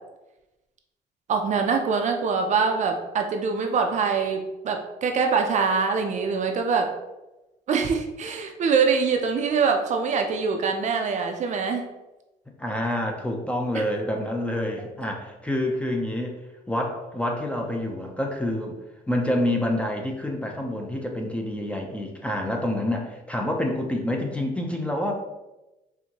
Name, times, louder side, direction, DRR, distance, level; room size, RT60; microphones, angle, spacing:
voice 1, 1.3-6.9 7.7-11.8 13.7-13.8, right 5 dB, 45° right, 4 dB, 0.5 m, -24 dB
voice 2, 12.6-16.4 16.7-18.8 19.1-25.1, left 1 dB, 5° left, 1 dB, 0.5 m, -27 dB
4.3 x 2.7 x 2.9 m, 1.0 s
cardioid pair, 110°, 17 cm